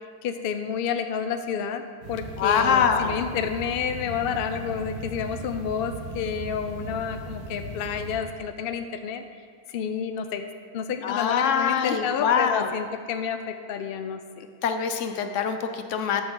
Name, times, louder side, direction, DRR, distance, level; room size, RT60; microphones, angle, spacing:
voice 1, 0.0-9.2 9.7-10.5 10.7-14.2, left 7 dB, 85° left, 8 dB, 0.5 m, -30 dB
sound 1, 2.0-8.2, right 1 dB, 70° right, 1.8 m, -38 dB
voice 2, 2.4-3.1 11.0-12.7 14.6-16.2, left 7 dB, 60° left, 7 dB, 0.9 m, -24 dB
12.5 x 6.1 x 3.8 m, 2.2 s
omnidirectional pair, 1.6 m